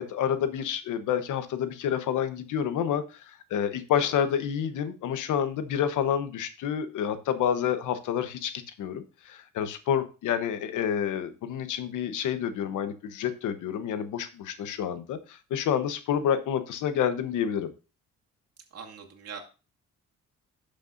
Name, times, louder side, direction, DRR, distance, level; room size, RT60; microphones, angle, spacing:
voice 1, 0.0-17.7, left 8 dB, 85° left, 11 dB, 1.0 m, -29 dB
voice 2, 18.7-19.4, right 6 dB, 55° right, 0 dB, 2.4 m, -42 dB
11.5 x 6.8 x 2.6 m, 0.32 s
cardioid pair, 90°, 30 cm